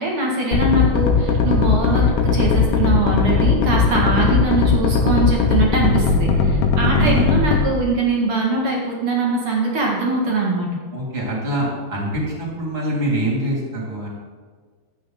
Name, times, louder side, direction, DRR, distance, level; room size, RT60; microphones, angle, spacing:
voice 1, 0.0-10.7, right 3 dB, 50° right, -3 dB, 1.7 m, -22 dB
sound 1, 0.5-7.6, left 5 dB, 65° left, 2.2 m, -17 dB
voice 2, 7.0-7.3 10.9-14.1, right 1 dB, 15° right, -3 dB, 2.4 m, -24 dB
13.5 x 8.7 x 4.0 m, 1.5 s
omnidirectional pair, 5.1 m